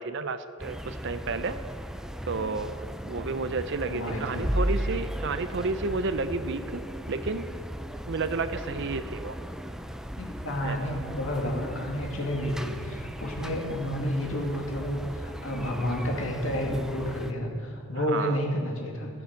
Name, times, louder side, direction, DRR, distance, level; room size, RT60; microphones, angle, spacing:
voice 1, 0.0-1.6 2.3-7.5 8.1-9.4 10.6-10.9 18.0-18.4, right 3 dB, 55° right, 11 dB, 0.6 m, -31 dB
sound 1, 0.6-17.3, equal, ahead, 0.4 m, -36 dB
voice 2, 3.8-4.5 10.2-19.1, equal, 65° left, 0 dB, 2.2 m, -31 dB
14.0 x 11.5 x 5.8 m, 2.4 s
head